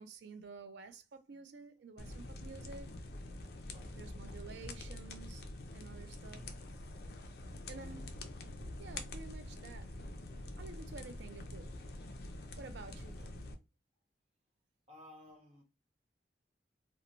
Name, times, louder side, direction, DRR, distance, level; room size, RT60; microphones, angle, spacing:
voice 1, 0.0-3.0 3.9-5.4 5.7-6.4 7.7-8.1 8.8-9.9 10.6-11.7 12.6-13.2, right 4 dB, 75° right, 0.4 m, -51 dB
sound 1, 2.0-13.5, left 1 dB, 60° left, 0.4 m, -46 dB
voice 2, 3.7-4.1 6.3-6.6 13.0-13.3 14.9-15.6, left 1 dB, 35° right, 1.1 m, -58 dB
2.9 x 2.1 x 2.5 m
head